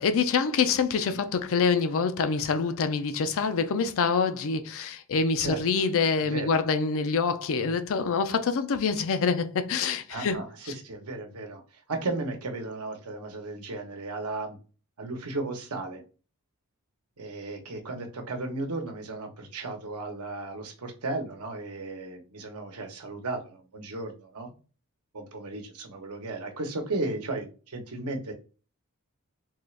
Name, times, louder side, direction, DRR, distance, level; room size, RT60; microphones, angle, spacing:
voice 1, 0.0-10.4, left 5 dB, 65° left, 0.4 m, -26 dB
voice 2, 6.2-6.6 10.1-11.6 11.9-14.6 15.0-16.0 17.2-24.5 25.1-28.3, right 2 dB, 85° right, 0.9 m, -35 dB
3.7 x 2.4 x 3.2 m
head